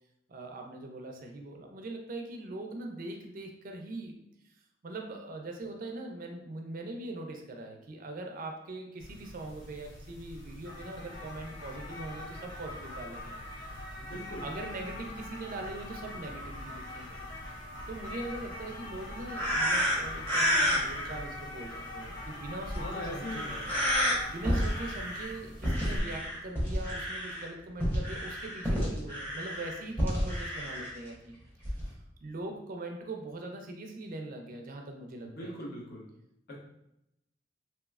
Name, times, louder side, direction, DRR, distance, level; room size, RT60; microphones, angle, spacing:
voice 1, 0.3-4.2 4.8-13.3 14.4-17.2 17.9-23.5 24.3-31.4 31.8-31.9 32.2-35.5, right 2 dB, 45° right, 3 dB, 0.4 m, -41 dB
sound 1, 9.0-26.0, left 1 dB, 85° left, 1.1 m, -42 dB
voice 2, 14.0-14.5 22.7-23.7 35.2-36.1 36.5-36.6, left 1 dB, 55° left, -4 dB, 0.9 m, -40 dB
sound 2, 19.3-21.1 22.7-22.8 23.2-24.1 24.4-25.3 25.6-27.5 27.8-30.9 31.6-31.9, equal, 10° left, 0.9 m, -30 dB
3.0 x 3.0 x 2.3 m, 0.83 s
head